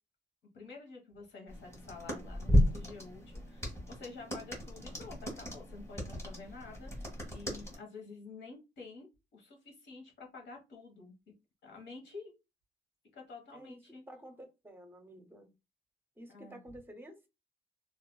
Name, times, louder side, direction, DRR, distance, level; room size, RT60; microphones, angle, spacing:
voice 1, 0.5-11.2 11.6-12.3 13.1-14.0 16.3-16.6, left 4 dB, 65° left, 1.3 m, -49 dB
sound 1, 1.5-7.8, equal, 15° left, 1.3 m, -34 dB
voice 2, 13.5-15.5 16.2-17.2, equal, 10° right, 0.7 m, -51 dB
2.8 x 2.5 x 2.3 m
cardioid pair, 90°, 20 cm